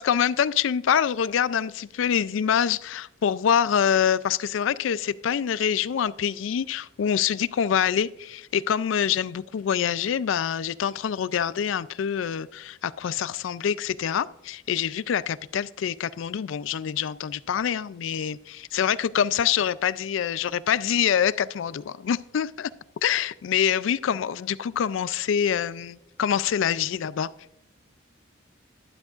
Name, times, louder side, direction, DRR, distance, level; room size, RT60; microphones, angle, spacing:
voice 1, 0.0-22.7 23.0-27.3, left 8 dB, 65° left, 18 dB, 0.3 m, -25 dB
12.5 x 11.5 x 2.4 m, 0.86 s
head